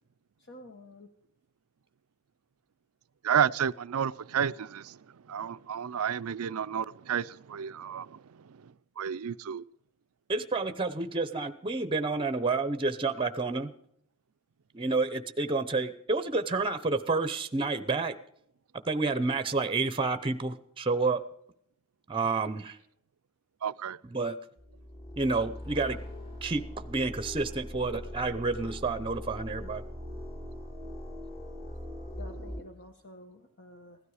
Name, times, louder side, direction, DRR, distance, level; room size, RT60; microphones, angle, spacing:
voice 1, 0.4-1.1 32.2-34.0, left 1 dB, 50° left, 1.2 m, -49 dB
voice 2, 3.2-5.0 5.3-8.2 9.0-9.6 23.6-24.0, right 8 dB, 70° right, 0.5 m, -31 dB
voice 3, 10.3-13.7 14.7-18.1 18.9-21.2 22.1-22.8 24.0-24.4 25.2-26.0 26.4-29.8, right 3 dB, 25° right, 0.7 m, -29 dB
sound 1, 24.6-32.6, left 1 dB, 25° left, 2.6 m, -41 dB
16.0 x 12.5 x 4.9 m
head